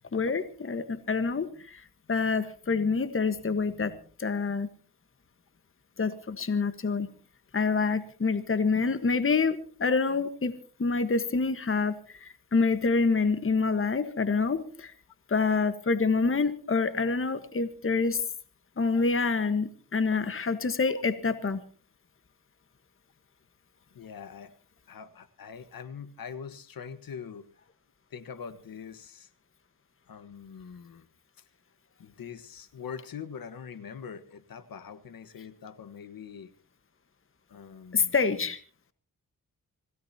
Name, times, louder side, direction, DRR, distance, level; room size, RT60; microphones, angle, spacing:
voice 1, 0.1-3.9 4.2-4.7 6.0-7.1 7.5-10.5 10.8-14.9 15.3-18.2 18.8-21.6 37.9-38.6, left 4 dB, 35° left, 11 dB, 1.5 m, -27 dB
voice 2, 23.9-24.5 24.9-27.5 28.1-29.3 30.1-31.0 32.0-36.5 37.5-38.1, left 7 dB, 75° left, 12 dB, 1.5 m, -43 dB
26.0 x 17.0 x 2.9 m, 0.41 s
cardioid pair, 65°, 35 cm